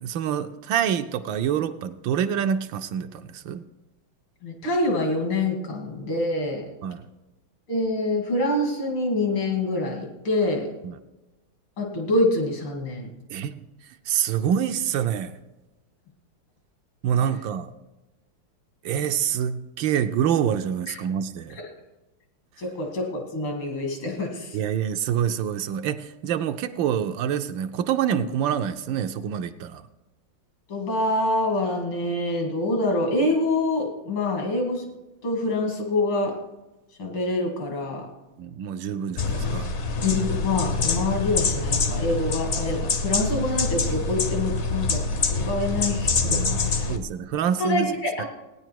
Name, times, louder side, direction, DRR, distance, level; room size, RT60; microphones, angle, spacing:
voice 1, 0.0-3.6 6.8-7.0 10.8-11.0 13.3-13.5 14.1-15.3 17.0-17.7 18.8-21.6 24.5-29.8 38.4-39.7 46.9-47.9 48.2-48.3, right 9 dB, 75° right, 9 dB, 1.3 m, -26 dB
voice 2, 4.4-6.6 7.7-10.7 11.8-13.1 20.9-21.0 21.5-21.7 22.6-24.6 30.7-34.8 35.2-36.4 37.0-38.1 40.0-46.9 47.6-48.3, left 2 dB, 80° left, 1 dB, 3.2 m, -26 dB
sound 1, 39.2-47.0, left 4 dB, 50° left, 0.9 m, -25 dB
17.0 x 9.7 x 4.6 m, 1.1 s
omnidirectional pair, 2.3 m